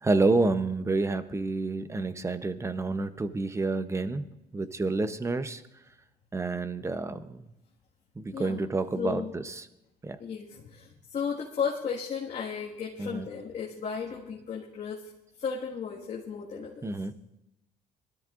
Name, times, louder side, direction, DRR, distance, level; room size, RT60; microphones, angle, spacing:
voice 1, 0.0-5.6 6.3-7.4 8.2-9.5 10.0-10.2 13.0-13.3 16.8-17.1, right 3 dB, 15° right, 12 dB, 0.7 m, -29 dB
voice 2, 8.3-8.6 9.0-9.3 10.2-15.1 15.4-16.9, left 6 dB, 45° left, -4 dB, 1.7 m, -34 dB
22.0 x 13.0 x 2.5 m, 0.90 s
cardioid pair, 110°, 17 cm